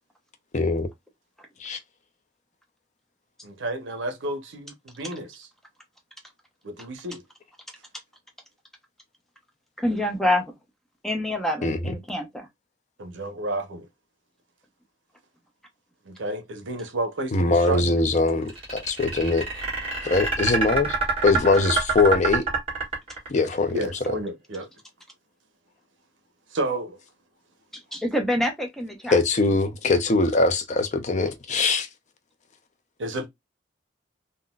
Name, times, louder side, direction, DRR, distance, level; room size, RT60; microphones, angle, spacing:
voice 1, 0.5-0.9 1.6-1.8 11.6-11.9 17.3-19.4 20.0-21.0 21.2-22.4 23.3-23.9 29.1-31.9, left 3 dB, 40° left, 0.5 m, -22 dB
voice 2, 3.4-5.5 6.6-7.2 13.0-13.9 16.1-17.8 23.7-24.7 26.5-27.0 33.0-33.3, right 1 dB, 80° right, 0.8 m, -31 dB
voice 3, 9.8-10.4 11.0-12.5 27.7-29.2, left 1 dB, ahead, 0.7 m, -26 dB
sound 1, 18.5-23.5, right 4 dB, 35° right, 1.6 m, -26 dB
3.8 x 2.2 x 2.2 m
head